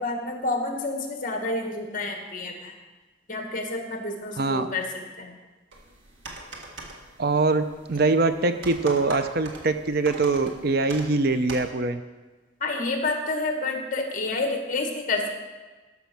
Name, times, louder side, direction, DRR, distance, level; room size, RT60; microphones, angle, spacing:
voice 1, 0.0-2.8 3.3-5.4 12.6-15.3, left 2 dB, 45° left, 3 dB, 1.6 m, -29 dB
voice 2, 4.4-4.7 7.2-12.0, right 3 dB, 55° right, 9 dB, 0.6 m, -23 dB
sound 1, 5.7-11.7, right 2 dB, 75° right, 1.8 m, -42 dB
12.5 x 6.1 x 6.0 m, 1.2 s
head